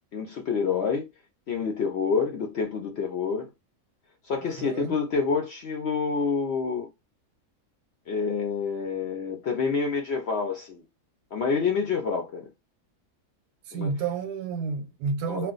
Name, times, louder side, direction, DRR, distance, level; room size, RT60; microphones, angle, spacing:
voice 1, 0.1-1.1 1.5-3.5 4.2-6.9 8.1-10.8 11.3-12.5 13.7-13.9 15.3-15.5, left 5 dB, 60° left, 0.7 m, -27 dB
voice 2, 4.4-5.0 13.7-15.5, right 5 dB, 85° right, 1.1 m, -31 dB
2.4 x 2.3 x 3.8 m
omnidirectional pair, 1.7 m